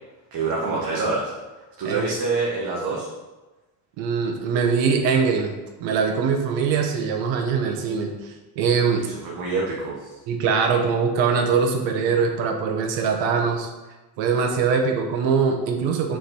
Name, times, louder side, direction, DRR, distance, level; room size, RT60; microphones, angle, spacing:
voice 1, 0.3-1.3 1.8-3.1 9.0-10.1, right 3 dB, 55° right, -5 dB, 1.4 m, -26 dB
voice 2, 4.0-5.5 5.8-9.1 10.3-13.7 14.2-16.2, right 5 dB, 85° right, 4 dB, 1.1 m, -22 dB
5.1 x 4.6 x 5.3 m, 1.1 s
cardioid pair, 145°, 43 cm